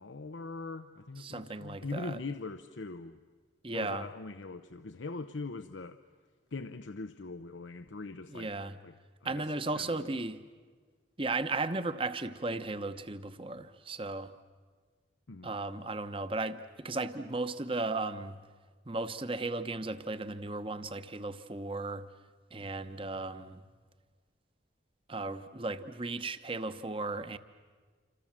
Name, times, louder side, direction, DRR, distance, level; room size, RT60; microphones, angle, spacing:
voice 1, 0.0-3.2 3.7-6.0 6.5-8.5 8.8-9.0 9.2-10.1 15.3-15.5, left 3 dB, 90° left, 0.8 m, -41 dB
voice 2, 1.2-2.2 3.6-4.0 8.3-8.7 9.2-10.4 11.2-14.3 15.4-18.4 18.9-22.0 22.5-23.6 25.1-27.4, right 3 dB, 30° right, 1.0 m, -35 dB
27.5 x 26.5 x 7.5 m
head